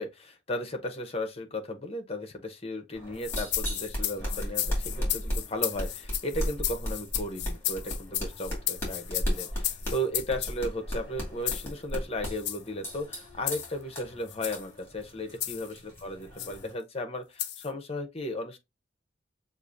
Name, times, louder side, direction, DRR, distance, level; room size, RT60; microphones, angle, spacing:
voice 1, 0.0-18.6, left 1 dB, 35° left, 0.8 m, -35 dB
sound 1, 2.9-16.7, equal, 15° left, 2.2 m, -36 dB
sound 2, 3.2-10.6 11.5-11.7 12.4-12.6 13.5-13.7 14.3-14.6 15.4-15.7 16.4-16.6 17.4-17.7, left 13 dB, 65° left, 0.5 m, -34 dB
6.5 x 2.5 x 2.5 m
head